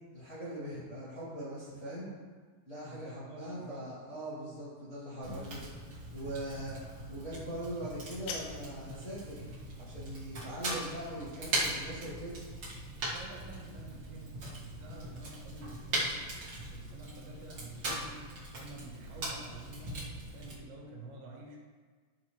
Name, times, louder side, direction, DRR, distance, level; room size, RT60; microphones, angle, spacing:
voice 1, 0.1-2.2 2.6-5.6 6.1-6.8 7.1-9.5 9.8-12.4, right 1 dB, 20° left, -10 dB, 1.7 m, -41 dB
voice 2, 2.8-3.8 13.1-16.4 16.7-18.2 18.5-21.6, right 2 dB, 85° right, -1 dB, 3.9 m, -49 dB
Fire, 5.2-20.6, right 1 dB, 60° right, 1.1 m, -40 dB
sound 1, 7.8-8.9, left 5 dB, 80° left, 3.0 m, -43 dB
13.0 x 7.3 x 3.2 m, 1.5 s
omnidirectional pair, 5.0 m